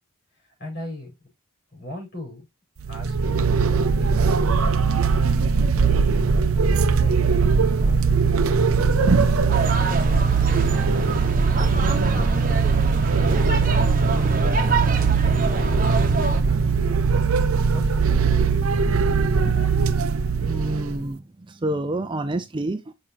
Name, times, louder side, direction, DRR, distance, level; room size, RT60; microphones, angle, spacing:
voice 1, 0.3-1.1 1.7-2.5 2.8-3.5 3.9-4.3 5.3-6.2 6.6-8.0 8.7-10.0 10.3-12.4 13.1-14.6 14.9-17.0 17.7-18.6 19.3-19.7, left 2 dB, 50° left, 5.2 m, -41 dB
sound 1, 2.8-21.0, right 5 dB, 80° right, 0.6 m, -20 dB
sound 2, 9.5-16.4, right 3 dB, 40° right, 1.0 m, -26 dB
voice 2, 20.4-22.9, right 1 dB, 20° right, 0.4 m, -28 dB
6.8 x 5.4 x 2.8 m
head